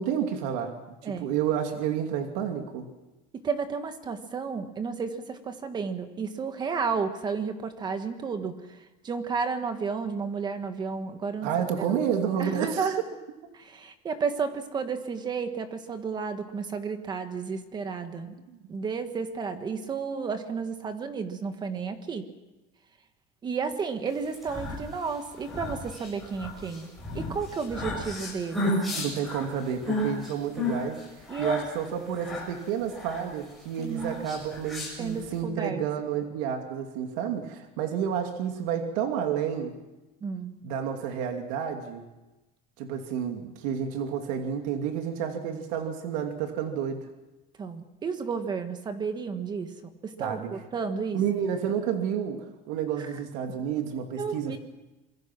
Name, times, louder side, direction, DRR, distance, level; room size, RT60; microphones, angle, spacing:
voice 1, 0.0-2.9 11.4-13.0 28.9-31.0 31.4-39.7 40.6-42.0 42.8-47.1 50.2-50.5 51.1-54.6, right 8 dB, 75° right, 5 dB, 2.7 m, -30 dB
voice 2, 3.3-11.5 11.9-12.0 12.4-13.0 13.5-18.3 18.7-22.3 23.4-26.9 27.1-28.7 31.3-31.7 33.8-34.3 35.0-35.8 40.2-40.5 47.6-49.7 50.0-51.2 53.0-53.1 53.5-53.6 54.2-54.6, right 5 dB, 20° right, 8 dB, 1.5 m, -32 dB
sound 1, 24.2-35.4, left 1 dB, ahead, 7.4 m, -34 dB
26.5 x 22.5 x 6.1 m, 1.1 s
cardioid pair, 180°, 21 cm